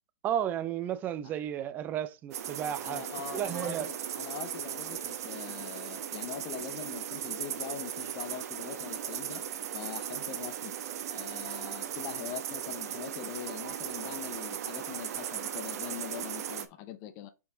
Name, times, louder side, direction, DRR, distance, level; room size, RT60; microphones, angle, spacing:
voice 1, 0.2-3.0 3.3-3.9, right 10 dB, 15° right, 0.5 m, -33 dB
sound 1, 2.3-16.7, right 10 dB, 50° right, 0.9 m, -37 dB
voice 2, 2.8-9.4 9.7-10.7 11.1-17.3, left 10 dB, 30° left, 0.6 m, -42 dB
5.4 x 4.7 x 3.8 m
hypercardioid pair, 150°, 11 cm